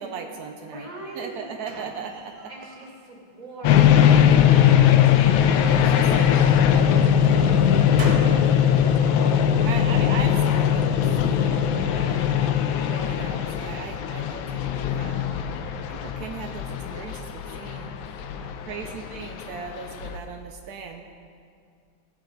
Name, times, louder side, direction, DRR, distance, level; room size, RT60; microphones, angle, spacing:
voice 1, 0.0-0.9 1.1-2.5 5.6-7.0 7.3-7.6 9.6-12.4 12.8-15.3 15.9-18.0 18.6-21.0, right 5 dB, 85° right, 4 dB, 0.8 m, -38 dB
voice 2, 0.6-1.6 2.5-4.2 4.5-6.0 6.9-10.0 17.6-18.0 18.3-18.6, right 1 dB, 15° right, -5 dB, 1.9 m, -43 dB
sound 1, 1.0-2.9 3.4-4.1 5.1-6.6 7.1-8.5, right 2 dB, 55° right, 1.7 m, -41 dB
sound 2, 3.6-20.2, left 9 dB, 80° left, 1.3 m, -20 dB
16.0 x 5.8 x 3.9 m, 2.3 s
omnidirectional pair, 2.3 m